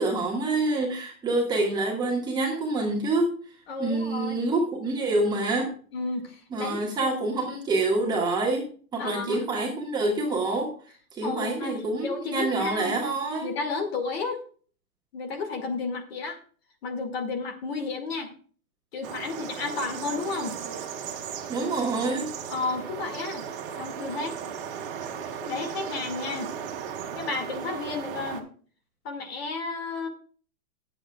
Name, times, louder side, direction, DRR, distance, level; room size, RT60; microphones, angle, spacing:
voice 1, 0.0-3.3 3.8-5.7 6.5-8.7 8.9-10.7 11.2-13.5 21.5-22.3, right 2 dB, 10° right, -2 dB, 1.7 m, -26 dB
voice 2, 3.7-4.4 5.9-7.1 9.0-9.5 11.2-13.0 13.4-14.4 15.1-16.4 16.8-18.3 18.9-20.6 22.5-23.4 23.8-24.4 25.4-26.5 27.1-28.5 29.0-30.1, left 4 dB, 45° left, 6 dB, 2.2 m, -32 dB
sound 1, 19.0-28.4, right 7 dB, 40° right, 1.9 m, -36 dB
19.5 x 8.0 x 2.4 m, 0.44 s
hypercardioid pair, 170°, 42 cm